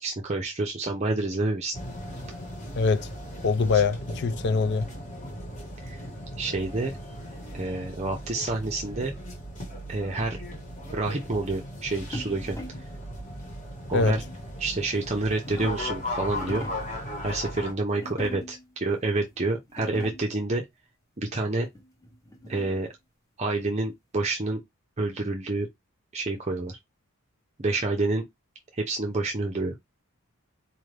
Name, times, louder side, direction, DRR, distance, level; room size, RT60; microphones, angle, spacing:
voice 1, 0.0-1.7 5.8-6.0 6.4-6.9 7.5-9.1 9.9-10.4 10.9-12.6 13.9-14.2 14.6-16.7 17.2-20.6 21.2-21.7 22.5-22.9 23.4-24.6 25.0-25.7 26.1-26.8 27.6-28.3 28.7-29.7, right 2 dB, 30° right, 0.5 m, -28 dB
sound 1, 1.7-17.7, equal, 35° left, 1.3 m, -37 dB
voice 2, 2.8-3.1 3.4-4.9 13.9-14.2, left 4 dB, 50° left, 0.4 m, -23 dB
sound 2, 12.1-12.9 14.0-14.5 15.1-15.9 16.3-16.9 18.0-18.7 19.3-19.4 19.6-20.4 21.7-22.9, left 1 dB, 15° left, 1.0 m, -40 dB
4.2 x 2.5 x 3.2 m
head